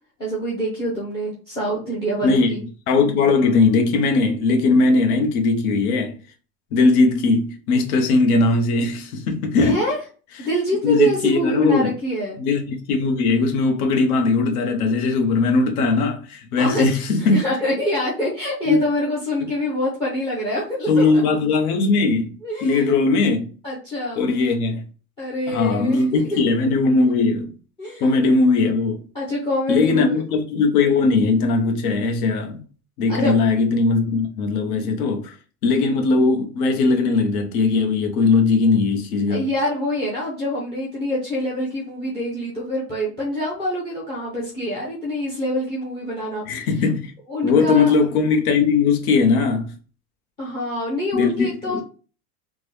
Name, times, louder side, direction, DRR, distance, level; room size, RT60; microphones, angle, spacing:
voice 1, 0.2-2.6 9.6-10.0 10.4-12.4 16.6-16.8 17.2-21.2 22.4-23.0 23.6-24.3 25.2-26.4 27.8-28.1 29.1-30.2 33.1-33.3 39.3-46.7 47.3-47.9 50.4-51.8, equal, 10° left, 0.4 m, -25 dB
voice 2, 2.2-2.5 2.9-6.1 6.7-9.8 10.8-11.9 12.4-17.5 18.7-18.8 20.9-22.3 22.6-23.5 24.2-24.8 25.5-27.5 28.0-29.0 29.7-32.6 33.0-35.3 35.6-39.5 46.5-47.1 47.4-49.7 51.1-51.8, left 3 dB, 80° left, 0.9 m, -19 dB
3.6 x 2.1 x 3.1 m
supercardioid pair, 170°, 44 cm